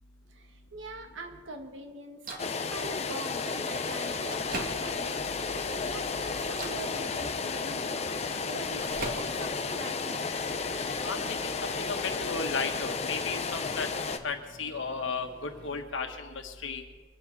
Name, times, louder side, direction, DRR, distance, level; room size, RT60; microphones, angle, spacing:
voice 1, 0.3-2.3 2.7-5.4 5.7-8.0 8.4-10.4, right 2 dB, 75° right, 4 dB, 1.8 m, -43 dB
Microwave oven, 2.2-2.6 3.5-3.6 4.1-5.2 5.7-6.0 6.5-6.9 8.1-9.6 10.0-11.0 11.6-15.8, right 2 dB, 45° right, 1.9 m, -44 dB
sound 1, 2.4-14.2, left 4 dB, 35° left, 0.8 m, -33 dB
voice 2, 5.2-6.4 11.0-13.9 14.2-16.8, left 4 dB, 75° left, 5 dB, 1.6 m, -35 dB
24.0 x 8.8 x 5.4 m, 1.5 s
head